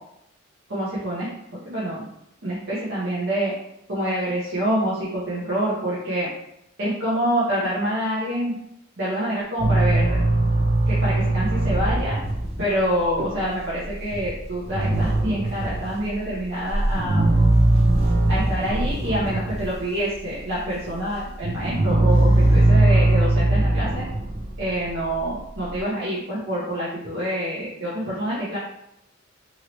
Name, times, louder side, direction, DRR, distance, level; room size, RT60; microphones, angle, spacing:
voice 1, 0.7-1.3 1.6-2.0 2.4-3.5 3.9-6.3 6.8-8.6 9.0-10.2 10.9-12.2 12.6-17.2 18.3-24.1 24.6-28.6, equal, 55° right, -9 dB, 0.8 m, -26 dB
sound 1, 9.6-19.8 20.2-25.8, right 2 dB, 30° right, 0.4 m, -21 dB
2.9 x 2.7 x 3.0 m, 0.82 s
head